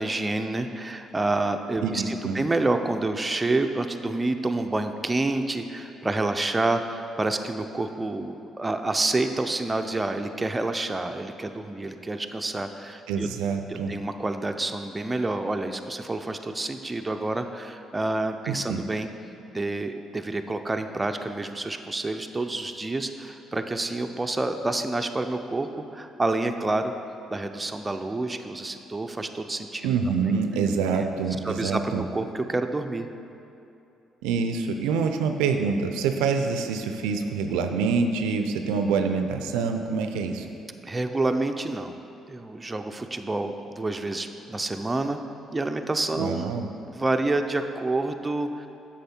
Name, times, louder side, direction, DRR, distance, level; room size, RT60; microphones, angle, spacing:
voice 1, 0.0-13.3 13.7-19.1 19.5-26.9 27.3-29.9 30.2-30.3 30.9-31.1 31.4-33.1 40.8-42.0 42.3-45.2 45.5-46.5 46.8-48.7, right 2 dB, 20° right, 6 dB, 0.5 m, -28 dB
voice 2, 1.8-2.4 13.1-13.9 18.7-18.8 29.8-32.0 34.2-40.5 46.2-46.7, right 5 dB, 90° right, 6 dB, 0.4 m, -26 dB
7.9 x 6.2 x 4.3 m, 2.7 s
supercardioid pair, 65°, 0 cm